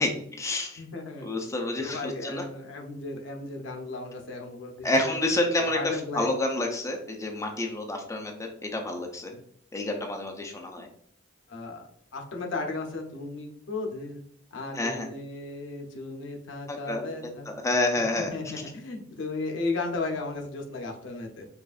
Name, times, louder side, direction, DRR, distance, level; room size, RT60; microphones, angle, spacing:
voice 1, 0.0-0.8 1.2-2.4 4.8-5.8 6.1-8.3 8.7-9.3 9.7-10.9 14.8-15.1 16.7-17.1 17.5-18.3, left 2 dB, 15° left, 2 dB, 0.5 m, -28 dB
voice 2, 0.8-1.3 1.8-5.2 5.6-6.3 11.5-14.2 14.5-17.5 18.2-21.5, left 3 dB, 85° left, 2 dB, 0.7 m, -35 dB
4.7 x 2.5 x 2.4 m, 0.65 s
head